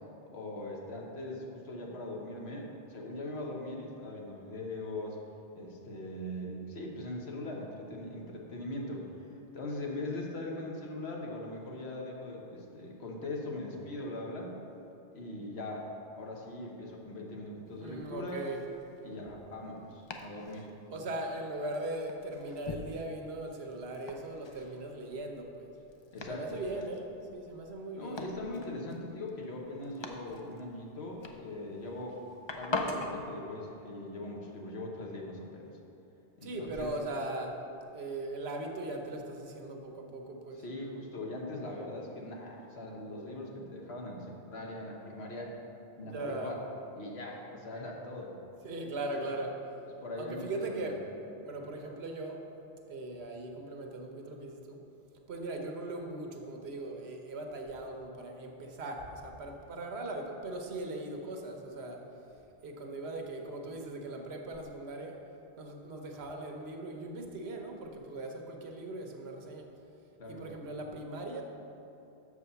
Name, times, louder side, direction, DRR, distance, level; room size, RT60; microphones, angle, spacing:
voice 1, 0.2-5.2 5.5-9.1 9.5-14.6 15.1-18.5 19.0-20.7 26.1-26.6 27.9-32.2 32.5-35.7 36.4-36.9 40.6-45.5 46.0-46.6 46.9-48.4 49.2-49.3 50.0-50.9 70.2-70.5, left 1 dB, 80° left, -1 dB, 1.3 m, -40 dB
Domestic sounds home sounds, 17.7-33.2, left 2 dB, 40° left, 0.4 m, -44 dB
voice 2, 17.7-18.6 20.9-25.7 26.3-27.1 27.3-28.3 36.4-37.6 37.9-40.6 46.0-46.6 48.6-49.6 50.2-51.1 51.4-52.4 52.9-54.8 55.3-62.0 62.6-65.2 65.6-69.7 70.3-71.4, right 2 dB, 80° right, 3 dB, 1.1 m, -39 dB
6.5 x 4.9 x 6.8 m, 2.9 s
omnidirectional pair, 1.1 m